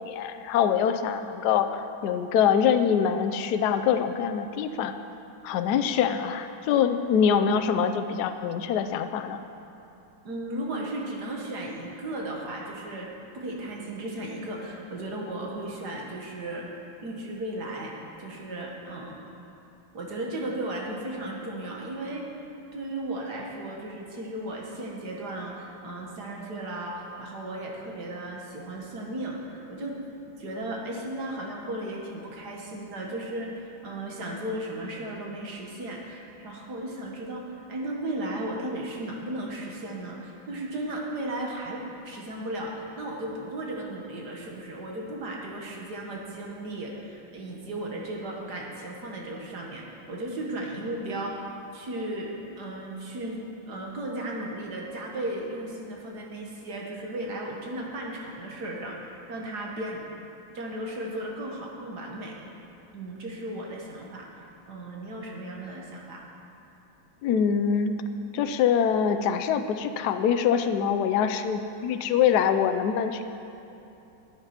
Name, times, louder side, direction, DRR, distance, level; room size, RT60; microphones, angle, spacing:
voice 1, 0.0-4.9 5.4-9.4 67.2-68.0 68.3-73.2, left 7 dB, 70° left, 9 dB, 1.1 m, -24 dB
voice 2, 10.2-13.1 13.3-16.7 17.0-19.2 19.9-22.3 22.7-30.0 30.4-51.4 51.7-60.1 60.5-62.4 62.9-66.3, right 1 dB, 55° right, -1 dB, 1.9 m, -35 dB
12.5 x 8.3 x 5.9 m, 2.9 s
omnidirectional pair, 2.1 m